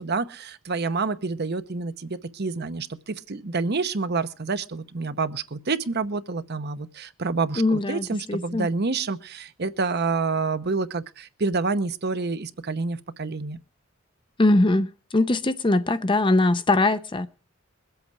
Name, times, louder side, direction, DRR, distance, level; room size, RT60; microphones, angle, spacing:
voice 1, 0.0-13.6, right 4 dB, 55° right, 0.9 m, -28 dB
voice 2, 7.6-8.7 14.4-17.3, left 2 dB, 25° left, 0.6 m, -21 dB
22.0 x 8.0 x 4.8 m
head